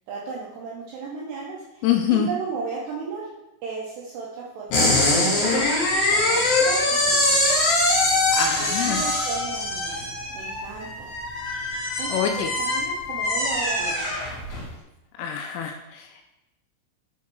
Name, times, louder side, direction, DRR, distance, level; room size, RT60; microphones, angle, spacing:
voice 1, 0.1-3.3 3.6-7.6 8.1-8.2 8.6-11.1 12.0-14.1, right 5 dB, 80° right, -4 dB, 2.5 m, -35 dB
voice 2, 1.8-2.3 8.3-9.1 12.1-12.5 15.2-16.3, left 9 dB, 85° left, 4 dB, 2.8 m, -25 dB
sound 1, 4.7-14.7, left 2 dB, 55° left, 3.4 m, -23 dB
6.9 x 5.2 x 4.7 m, 0.98 s
omnidirectional pair, 6.0 m